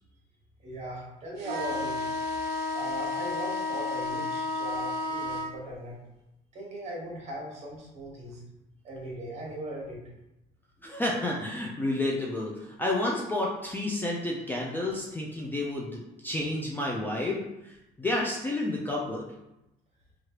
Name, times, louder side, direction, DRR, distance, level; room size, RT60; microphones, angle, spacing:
voice 1, 0.6-2.1 2.7-5.9 6.5-8.4 8.8-10.0, right 1 dB, 40° right, -3 dB, 1.2 m, -38 dB
sound 1, 1.4-5.5, left 3 dB, 90° right, 0.5 m, -32 dB
voice 2, 10.8-19.3, left 1 dB, 10° left, -3 dB, 0.4 m, -30 dB
3.1 x 2.4 x 2.9 m, 0.90 s
cardioid pair, 110°, 17 cm